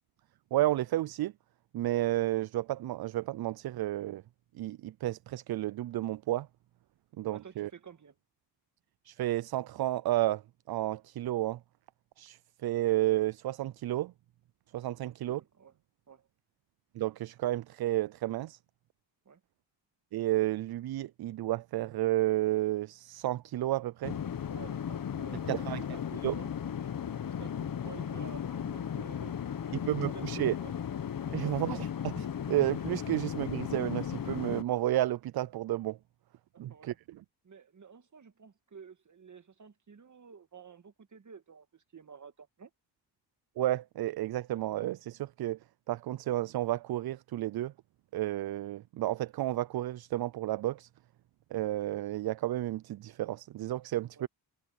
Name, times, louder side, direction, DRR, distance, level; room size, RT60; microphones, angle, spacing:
voice 1, 0.5-1.3 1.7-4.2 4.5-6.5 7.2-7.7 9.0-10.4 10.7-11.6 12.2-14.1 14.7-15.4 16.9-18.6 20.1-24.2 25.5-25.8 26.2-26.3 29.9-30.5 31.3-36.0 36.6-36.9 43.6-45.6 45.9-47.7 48.1-50.9 51.5-54.3, right 15 dB, 60° right, 0.5 m, -31 dB
voice 2, 7.3-8.2 15.0-15.7 16.1-16.3 19.3-19.4 24.5-26.6 27.2-29.9 30.1-30.8 31.3-31.6 36.5-37.0 37.4-42.7 54.2-54.3, right 6 dB, 40° right, 1.9 m, -51 dB
sound 1, 24.0-34.6, left 8 dB, 50° left, 1.2 m, -36 dB
supercardioid pair, 60°, 43 cm